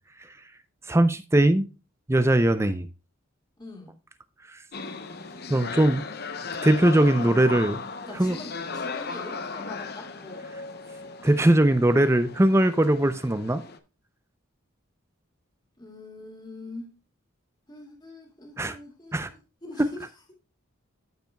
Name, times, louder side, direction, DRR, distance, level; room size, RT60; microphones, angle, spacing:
voice 1, 0.9-1.7 2.1-2.9 4.5-4.6 5.5-6.0 6.6-7.8 8.1-8.4 11.2-13.6 18.6-18.8 19.1-19.3, right 1 dB, 15° right, 0.5 m, -20 dB
voice 2, 3.6-4.0 8.0-10.4 15.8-17.0 17.7-20.0, left 2 dB, 20° left, 2.1 m, -43 dB
sound 1, 4.7-13.8, left 4 dB, 50° left, 0.7 m, -36 dB
13.5 x 5.5 x 2.3 m
head